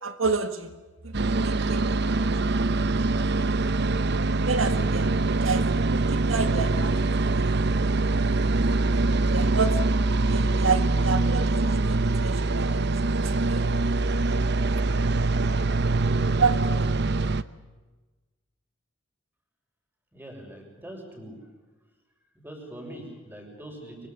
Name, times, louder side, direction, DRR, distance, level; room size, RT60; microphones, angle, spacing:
voice 1, 0.0-0.7 1.0-2.6 4.5-5.7 5.9-6.9 7.3-7.7 9.1-12.8 13.0-13.7 16.3-16.8, right 4 dB, 90° right, 9 dB, 1.7 m, -30 dB
sound 1, 1.1-17.4, right 3 dB, 60° right, 0.9 m, -24 dB
voice 2, 20.1-21.5 22.3-24.1, right 1 dB, 10° right, 2 dB, 6.9 m, -42 dB
24.5 x 24.0 x 7.3 m, 1.2 s
head